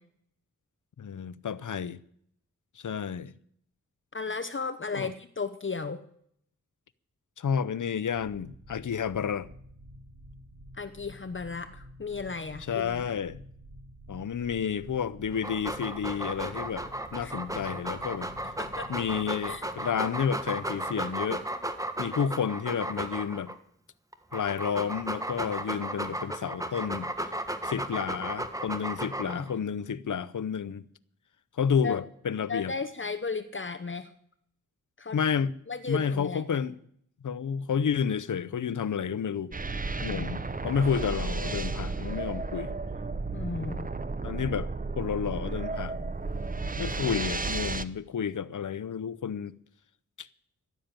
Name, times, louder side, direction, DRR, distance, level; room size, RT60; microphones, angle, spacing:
voice 1, 1.0-2.0 2.8-3.3 4.9-5.1 7.4-9.5 12.7-13.4 14.1-16.9 17.1-18.3 18.9-21.4 22.0-23.5 24.3-27.1 27.6-30.9 31.6-32.7 35.1-35.5 35.9-36.8 37.2-39.5 40.0-42.8 44.2-44.7 44.9-46.1 46.8-49.5 50.2-50.3, left 7 dB, 85° left, 0.7 m, -30 dB
voice 2, 4.1-6.0 10.7-13.0 17.2-17.4 18.6-18.9 19.5-19.7 29.2-29.5 31.8-32.0 32.5-34.1 35.0-35.2 35.7-36.4 40.0-40.4 43.3-43.9, left 4 dB, 40° left, 0.9 m, -35 dB
sound 1, 8.1-21.1, equal, 55° right, 4.9 m, -50 dB
Dog, 15.3-23.5 24.1-29.5, right 1 dB, 10° right, 1.4 m, -35 dB
sound 2, 39.5-47.9, right 3 dB, 30° right, 0.8 m, -33 dB
13.0 x 11.5 x 8.9 m
wide cardioid pair, 80°, 30 cm